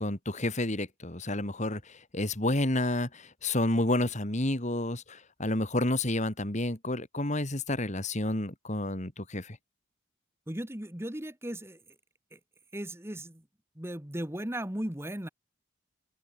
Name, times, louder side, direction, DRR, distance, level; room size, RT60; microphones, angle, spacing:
voice 1, 0.0-9.6, left 1 dB, 35° left, 2.9 m, -30 dB
voice 2, 10.5-11.8 12.3-12.4 12.7-13.4 13.7-15.3, right 1 dB, 10° right, 1.5 m, -36 dB
head